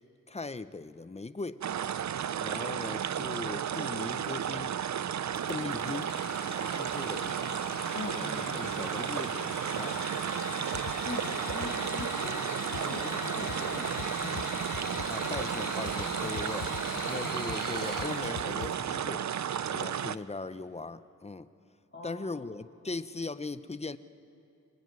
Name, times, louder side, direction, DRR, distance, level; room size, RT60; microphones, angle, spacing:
voice 1, 0.3-1.6 2.4-4.8 5.5-6.2 6.7-7.5 8.5-10.0 15.1-16.7 17.0-19.3 19.6-21.5 22.0-24.0, left 3 dB, 20° left, 13 dB, 0.7 m, -39 dB
sound 1, 1.6-20.2, right 9 dB, 60° right, 0.6 m, -33 dB
Engine / Sawing, 5.3-19.0, left 7 dB, 90° left, 1.1 m, -42 dB
voice 2, 7.9-8.8 11.0-14.5 16.4-16.5 16.9-17.2 21.9-22.2, left 3 dB, 35° left, -4 dB, 2.6 m, -42 dB
sound 2, 10.7-18.7, left 9 dB, 60° left, 0.8 m, -42 dB
26.5 x 23.0 x 9.6 m, 2.6 s
wide cardioid pair, 145°, 32 cm